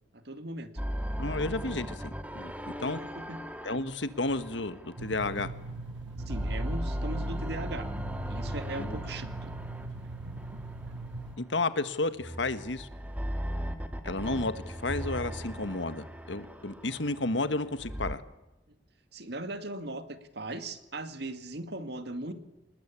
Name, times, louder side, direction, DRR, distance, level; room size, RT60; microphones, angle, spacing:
voice 1, 0.1-0.7 3.0-3.4 6.3-7.9 8.3-9.5 19.1-22.3, right 2 dB, 60° right, 9 dB, 2.1 m, -38 dB
sound 1, 0.8-5.7 6.1-11.4 12.1-18.2, equal, 10° right, 1.6 m, -37 dB
voice 2, 1.2-2.5 2.8-3.0 3.6-5.5 8.8-9.0 11.4-12.9 14.0-18.2, left 2 dB, 80° left, 11 dB, 1.6 m, -32 dB
sound 2, 5.0-11.4, right 2 dB, 85° right, 1.7 m, -41 dB
27.0 x 20.5 x 8.6 m, 0.95 s
head